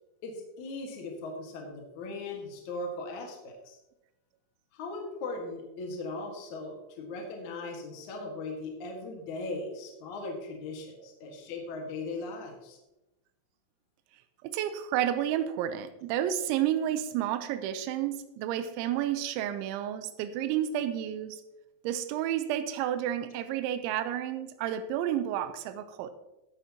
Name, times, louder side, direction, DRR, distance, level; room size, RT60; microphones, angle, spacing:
voice 1, 0.2-3.8 4.7-12.8, left 2 dB, 55° left, 0 dB, 2.4 m, -38 dB
voice 2, 14.4-21.4 21.8-26.1, right 11 dB, 85° right, 9 dB, 3.1 m, -31 dB
16.0 x 9.9 x 2.9 m, 0.94 s
omnidirectional pair, 5.4 m